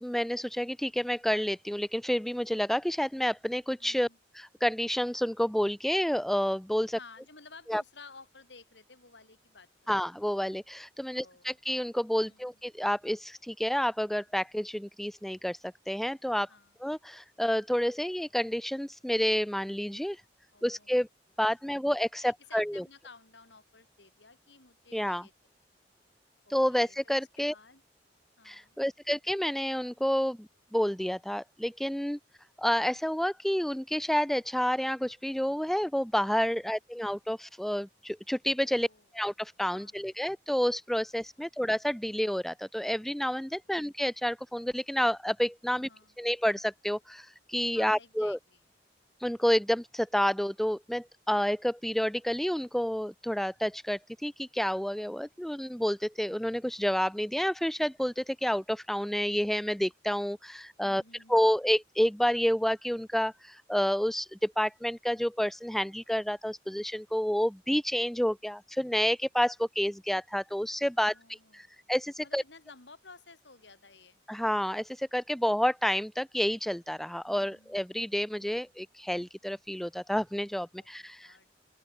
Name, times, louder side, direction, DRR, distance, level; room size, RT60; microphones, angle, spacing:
voice 1, 0.0-4.1 4.4-7.0 7.7-7.8 9.9-15.6 15.9-16.5 16.8-20.2 20.6-21.1 21.4-22.8 24.9-25.2 26.5-27.5 28.4-32.2 32.6-38.9 39.1-45.9 46.2-48.4 49.2-61.0 61.3-72.4 74.3-81.3, equal, ahead, 0.3 m, -29 dB
voice 2, 3.8-4.2 6.9-9.9 11.1-11.5 12.2-12.6 16.5-16.8 20.5-21.0 21.7-21.8 22.2-25.3 26.4-27.8 28.4-28.8 36.2-36.5 38.6-39.1 39.7-40.1 41.4-41.5 43.6-43.7 45.7-46.1 47.7-48.6 60.8-61.6 71.0-71.7 72.2-74.2 77.3-77.8 78.5-78.7 80.7-81.5, left 4 dB, 70° left, 6.3 m, -55 dB
open air
head